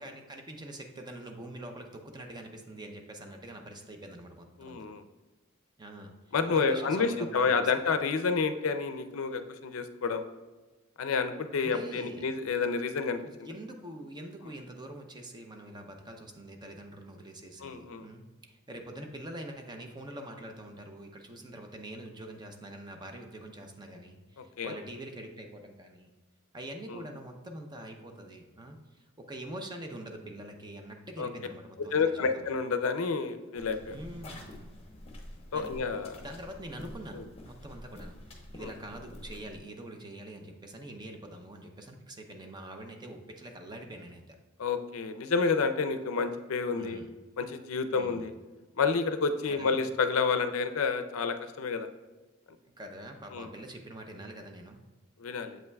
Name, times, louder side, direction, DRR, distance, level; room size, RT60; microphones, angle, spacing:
voice 1, 0.0-4.8 5.8-6.1 6.5-7.7 11.6-12.3 13.2-26.1 26.5-32.5 33.9-34.7 35.5-35.7 36.2-44.4 46.8-47.1 47.9-48.3 49.5-49.8 52.8-54.8, right 1 dB, 20° right, 4 dB, 0.6 m, -44 dB
voice 2, 4.6-5.0 6.3-10.2 11.0-13.5 17.6-18.1 24.6-24.7 26.9-27.0 31.2-31.3 31.9-34.0 35.5-36.2 37.1-37.2 38.6-38.7 44.6-47.0 47.4-48.3 48.8-51.9 53.3-53.5 55.2-55.6, left 5 dB, 70° left, 9 dB, 0.5 m, -29 dB
sound 1, 33.6-39.6, left 1 dB, 30° left, 0.9 m, -47 dB
7.4 x 5.5 x 2.3 m, 1.2 s
head